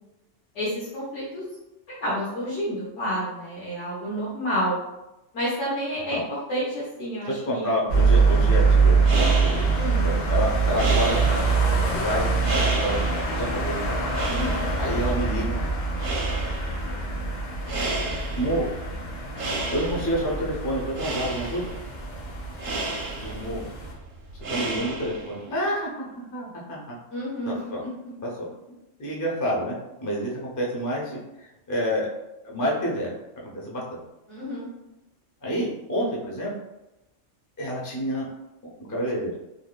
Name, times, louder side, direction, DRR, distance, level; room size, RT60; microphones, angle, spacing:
voice 1, 0.5-1.4 2.0-4.8 5.3-6.2 6.5-7.7 9.8-10.1 14.3-14.7 27.1-27.7 34.3-34.7, equal, 70° left, -8 dB, 1.1 m, -29 dB
voice 2, 7.2-11.2 11.9-12.2 12.8-14.0 14.8-15.6 18.4-18.7 19.7-21.7 23.2-23.6 24.5-27.0 27.5-27.8 28.2-28.5 29.0-29.8 30.0-32.1 32.4-33.1 33.4-34.0 35.4-36.5 37.6-38.3 38.9-39.3, equal, 30° left, -4 dB, 0.3 m, -28 dB
sound 1, 7.9-23.9, right 4 dB, 90° left, 1.3 m, -24 dB
sound 2, 9.0-25.5, right 2 dB, 60° right, 0.6 m, -33 dB
3.4 x 2.3 x 2.2 m, 0.96 s
omnidirectional pair, 1.3 m